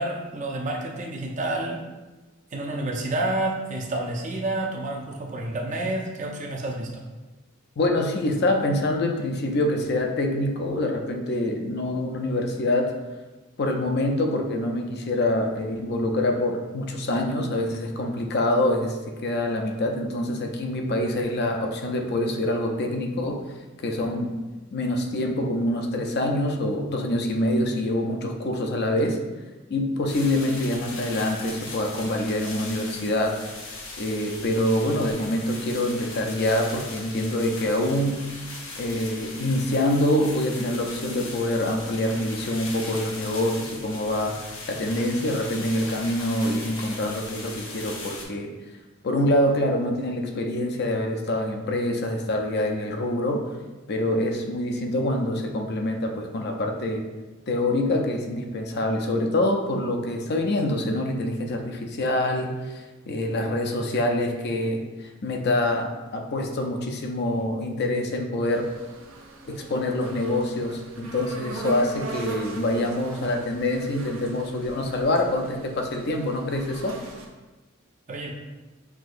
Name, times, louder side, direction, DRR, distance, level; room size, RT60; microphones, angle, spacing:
voice 1, 0.0-1.8 2.5-7.0 78.1-78.3, right 1 dB, 40° right, 1 dB, 0.5 m, -29 dB
voice 2, 7.8-12.9 13.6-23.4 23.8-24.3 24.7-29.2 29.7-33.4 34.0-38.2 38.8-48.5 49.0-53.4 53.9-57.1 57.5-68.7 69.5-77.0, left 1 dB, 55° left, 3 dB, 0.5 m, -25 dB
sound 1, 30.1-48.2, left 3 dB, 80° left, 0.9 m, -39 dB
sound 2, 68.5-77.3, right 3 dB, 80° right, 0.6 m, -39 dB
6.0 x 2.7 x 2.5 m, 1.1 s
head